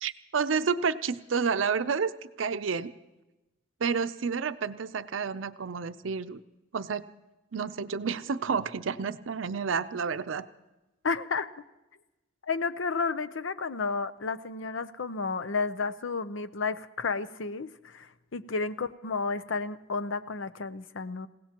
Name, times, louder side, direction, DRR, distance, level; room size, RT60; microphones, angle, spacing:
voice 1, 0.0-2.9 3.8-6.4 6.7-7.1 7.5-10.5, right 5 dB, 90° right, 12 dB, 0.6 m, -30 dB
voice 2, 11.0-11.5 12.5-21.3, left 4 dB, 80° left, 12 dB, 0.7 m, -32 dB
28.0 x 17.0 x 3.0 m, 1.0 s
head